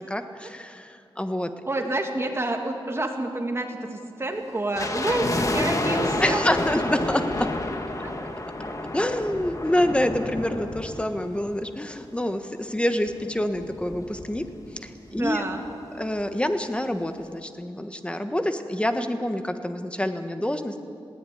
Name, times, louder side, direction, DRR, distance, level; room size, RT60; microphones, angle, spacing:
voice 1, 0.1-1.5 1.8-1.9 6.2-7.5 8.9-14.5 14.8-15.4 15.9-20.8, left 1 dB, 10° left, 7 dB, 1.4 m, -27 dB
voice 2, 1.7-6.4 8.0-8.1 15.1-15.6, right 2 dB, 25° right, 3 dB, 2.5 m, -28 dB
sound 1, 4.7-12.0 12.3-12.4 13.1-14.9 15.1-15.2 15.5-15.8 16.2-16.3, left 2 dB, 35° left, 1.8 m, -30 dB
21.0 x 16.5 x 9.4 m, 2.4 s
wide cardioid pair, 110°, 10 cm